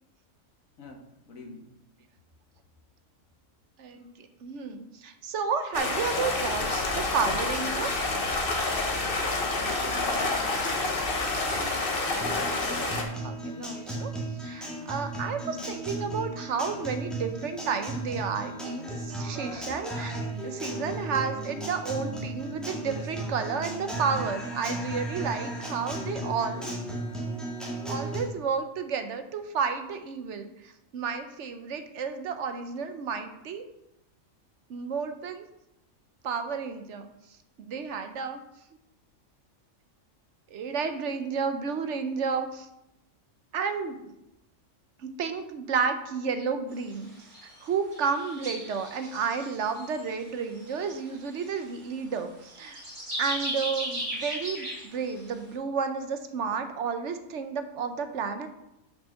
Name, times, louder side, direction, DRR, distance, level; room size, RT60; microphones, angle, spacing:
voice 1, 0.8-1.7 9.8-10.5 15.3-15.8, left 2 dB, 85° left, 3 dB, 1.6 m, -47 dB
voice 2, 3.8-7.9 13.2-14.1 14.4-26.7 27.9-33.7 34.7-35.4 36.2-37.1 37.6-38.4 40.5-42.7 43.5-44.1 45.0-47.1 47.4-52.8 53.2-58.5, right 5 dB, 65° right, 8 dB, 1.0 m, -31 dB
Stream, 5.7-13.0, left 3 dB, 45° left, 1.3 m, -28 dB
Guitar, 12.2-28.2, right 1 dB, ahead, 1.8 m, -35 dB
sound 1, 46.7-47.0 47.2-47.6 47.9-50.1 50.5-51.7 52.5-55.2, equal, 25° right, 2.7 m, -36 dB
5.7 x 5.6 x 6.3 m, 0.86 s
omnidirectional pair, 1.4 m